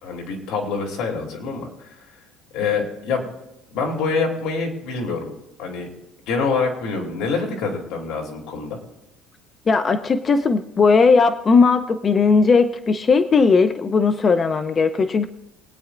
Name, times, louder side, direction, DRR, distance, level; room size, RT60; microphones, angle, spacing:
voice 1, 0.0-2.0 2.5-3.3 3.7-5.3 5.6-5.9 6.3-8.8, left 4 dB, 70° left, 1 dB, 2.8 m, -25 dB
voice 2, 9.7-15.3, left 4 dB, 25° left, 9 dB, 0.6 m, -17 dB
23.0 x 9.1 x 2.5 m, 0.91 s
cardioid pair, 145°, 0 cm